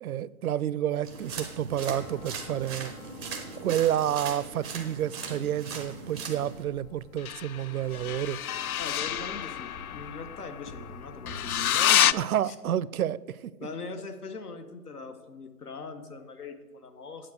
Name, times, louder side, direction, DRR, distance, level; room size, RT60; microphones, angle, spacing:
voice 1, 0.0-2.9 3.6-8.4 12.1-13.5, right 11 dB, 75° right, 20 dB, 0.5 m, -29 dB
sound 1, 1.0-6.6, right 4 dB, 5° left, 0.4 m, -39 dB
sound 2, 1.8-4.9 7.2-12.1, left 11 dB, 75° left, 0.5 m, -30 dB
sound 3, 6.4-11.7, left 2 dB, 40° left, 1.6 m, -49 dB
voice 2, 8.8-12.5 13.6-17.3, left 4 dB, 90° left, 8 dB, 1.5 m, -41 dB
9.1 x 7.6 x 6.4 m, 1.4 s
hypercardioid pair, 145°, 44 cm